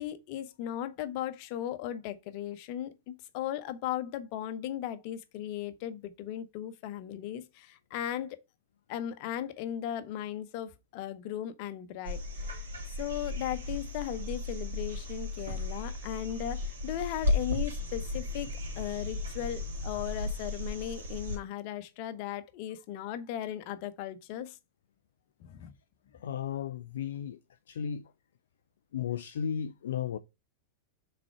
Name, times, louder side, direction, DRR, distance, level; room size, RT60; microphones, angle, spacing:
voice 1, 0.0-8.4 8.9-12.6 13.0-24.6 25.4-25.7, left 11 dB, 45° left, 0.9 m, -37 dB
sound 1, 12.0-21.4 23.5-23.6, left 2 dB, 70° right, 2.6 m, -35 dB
voice 2, 26.1-27.4 27.7-28.1 28.9-30.2, left 8 dB, 60° left, 0.4 m, -34 dB
6.0 x 4.3 x 4.6 m
figure-of-eight pair, 90°, 0 cm